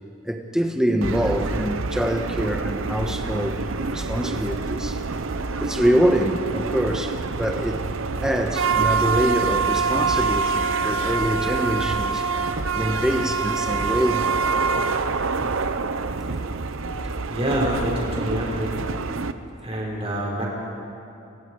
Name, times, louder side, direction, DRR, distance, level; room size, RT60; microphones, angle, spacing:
voice 1, 0.2-3.6 3.9-5.0 5.6-7.9 8.2-12.2 12.7-14.3 15.4-15.5 17.0-17.2, equal, 5° right, 3 dB, 1.4 m, -24 dB
sound 1, 1.0-19.3, right 4 dB, 75° right, 0.8 m, -26 dB
voice 2, 17.3-18.8 19.6-20.5, equal, 30° right, -4 dB, 5.4 m, -26 dB
29.5 x 22.0 x 4.9 m, 2.7 s
head